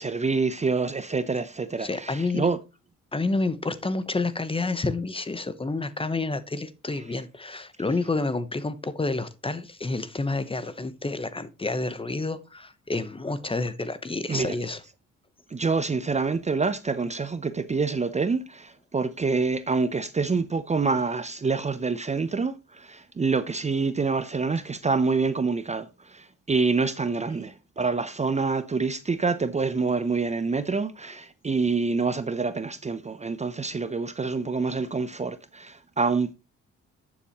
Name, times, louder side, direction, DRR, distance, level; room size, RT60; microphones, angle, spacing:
voice 1, 0.0-2.6 14.3-14.5 15.5-36.3, right 4 dB, 25° right, 0.7 m, -26 dB
voice 2, 1.8-2.5 3.1-14.8, left 3 dB, 20° left, 1.0 m, -29 dB
12.0 x 7.3 x 3.0 m
cardioid pair, 90°, 30 cm